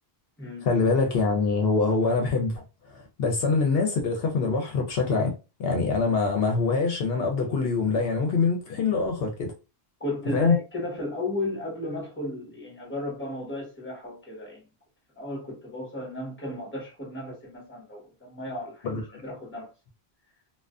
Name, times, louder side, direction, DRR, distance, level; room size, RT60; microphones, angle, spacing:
voice 1, 0.6-2.6 2.9-5.3 5.6-9.5 10.3-10.6 18.8-19.2, left 4 dB, 75° left, 0.8 m, -24 dB
voice 2, 10.0-14.7 15.2-19.7, left 1 dB, 10° left, 1.0 m, -34 dB
2.4 x 2.2 x 2.3 m
omnidirectional pair, 1.1 m